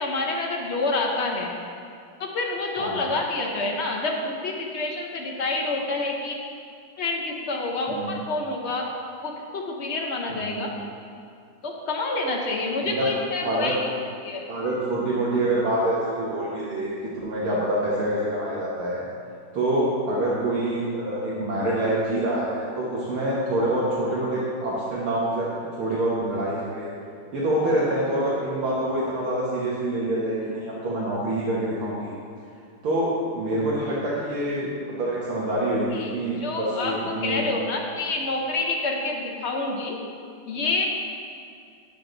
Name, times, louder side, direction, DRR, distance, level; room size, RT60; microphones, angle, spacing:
voice 1, 0.0-1.5 2.2-6.4 7.0-8.8 9.2-10.7 11.6-13.8 14.2-14.4 35.9-36.1 36.4-40.0 40.5-40.9, left 2 dB, 65° left, 0 dB, 0.6 m, -28 dB
voice 2, 2.8-3.1 7.9-8.2 10.3-10.7 12.8-13.1 13.4-13.8 14.5-16.9 17.2-19.0 19.5-25.5 25.8-26.9 27.3-32.1 32.8-37.5, right 1 dB, 70° right, -8 dB, 2.2 m, -26 dB
10.0 x 7.6 x 3.9 m, 2.3 s
omnidirectional pair, 2.4 m